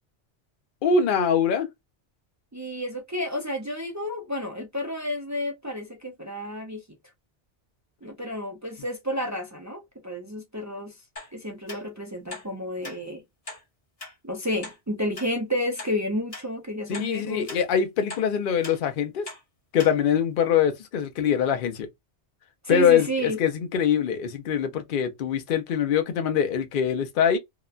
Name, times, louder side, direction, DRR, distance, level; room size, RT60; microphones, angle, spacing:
voice 1, 0.8-1.7 16.9-19.3 19.7-21.9 22.7-27.4, left 7 dB, 55° left, 0.7 m, -23 dB
voice 2, 2.5-6.8 8.0-10.9 11.3-13.2 14.2-17.5 22.6-23.4, left 1 dB, 30° right, 0.3 m, -31 dB
sound 1, 11.2-11.3 11.7-11.8 12.3-12.5 12.8-13.0 13.5-13.6 14.0-14.1 14.6-14.8 15.2-15.3 15.8-15.9 16.3-16.5 16.9-17.1 17.5-17.6 18.1-18.3 18.6-18.8 19.3-19.4 19.8-19.9 20.4-20.5, left 2 dB, 35° left, 1.1 m, -39 dB
2.8 x 2.1 x 2.3 m
omnidirectional pair, 1.2 m